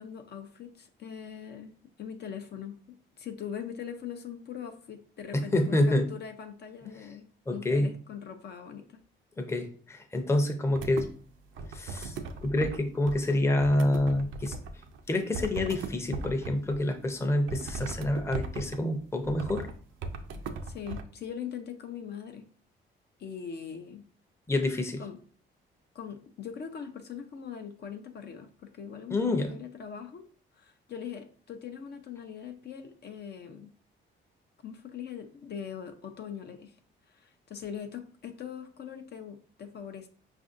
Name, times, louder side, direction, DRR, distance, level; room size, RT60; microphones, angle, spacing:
voice 1, 0.0-9.0 20.6-22.5 23.2-24.0 25.0-25.2 25.9-30.3 30.5-33.7 34.6-36.8 37.1-40.1, left 8 dB, 55° left, 6 dB, 0.6 m, -41 dB
voice 2, 5.3-6.1 7.5-7.9 9.4-11.1 11.7-14.5 15.1-19.7 24.5-25.0 29.1-29.5, left 1 dB, 15° left, 5 dB, 0.6 m, -27 dB
sound 1, 10.7-11.1 11.6-12.8 13.1-15.0 15.3-16.8 17.5-18.8 19.2-19.8 20.0-21.0, right 4 dB, 80° right, 0.5 m, -38 dB
5.0 x 2.5 x 2.5 m, 0.43 s
cardioid pair, 90°, 20 cm